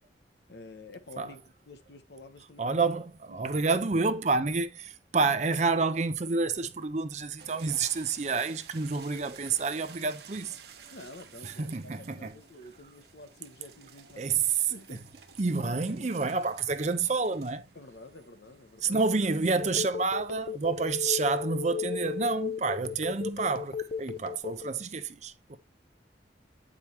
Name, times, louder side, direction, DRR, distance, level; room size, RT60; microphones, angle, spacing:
voice 1, 0.5-2.7 3.3-3.6 4.4-4.5 8.9-9.3 10.9-15.1 15.9-16.0 17.7-19.0, left 2 dB, 65° left, 1.0 m, -50 dB
voice 2, 2.6-10.6 11.4-12.4 14.2-15.0 15.4-17.7 18.8-25.6, right 4 dB, 40° right, 0.6 m, -29 dB
sound 1, 7.4-24.7, right 6 dB, 60° right, 0.9 m, -55 dB
Telephone, 19.6-24.8, left 7 dB, 45° left, 0.6 m, -34 dB
8.6 x 4.9 x 3.0 m
head